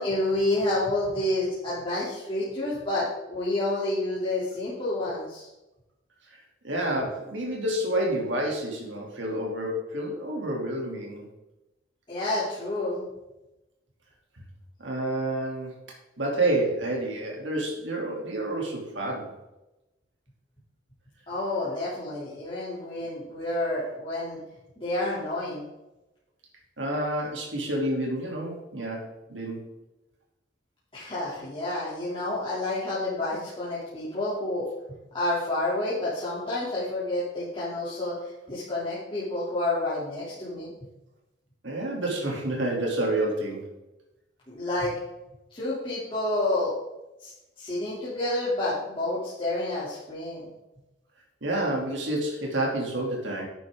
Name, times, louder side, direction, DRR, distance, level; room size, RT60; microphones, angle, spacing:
voice 1, 0.0-5.5 12.1-13.0 21.3-24.4 24.8-25.6 30.9-34.7 35.1-40.7 44.5-44.9 45.5-46.7 47.2-47.3 47.6-50.5, left 2 dB, 30° left, -10 dB, 3.0 m, -29 dB
voice 2, 6.6-11.3 14.8-15.7 16.2-19.3 26.8-29.7 41.6-43.6 51.4-53.5, right 1 dB, 80° right, -1 dB, 2.9 m, -29 dB
11.0 x 9.0 x 3.7 m, 0.97 s
head